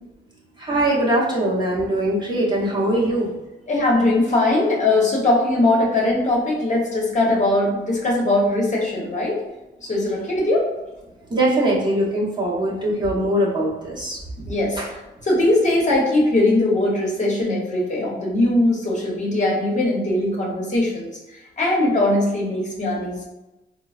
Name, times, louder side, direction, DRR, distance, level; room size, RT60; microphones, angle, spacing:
voice 1, 0.6-3.4 11.3-14.9, right 1 dB, 20° right, -6 dB, 0.9 m, -22 dB
voice 2, 3.7-9.4 9.8-10.7 14.5-21.1 21.6-23.3, left 2 dB, 35° left, -4 dB, 0.9 m, -20 dB
3.8 x 2.0 x 2.4 m, 1.0 s
cardioid pair, 90°, 20 cm